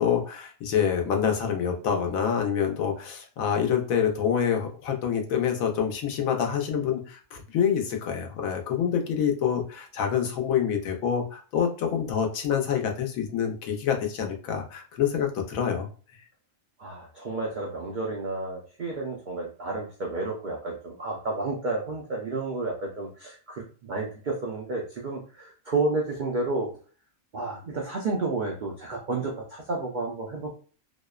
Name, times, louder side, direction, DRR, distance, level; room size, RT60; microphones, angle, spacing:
voice 1, 0.0-15.9, left 8 dB, 85° left, 2 dB, 1.1 m, -26 dB
voice 2, 16.8-26.7 27.3-30.5, right 3 dB, 75° right, -1 dB, 0.4 m, -31 dB
2.8 x 2.0 x 2.3 m, 0.39 s
omnidirectional pair, 1.4 m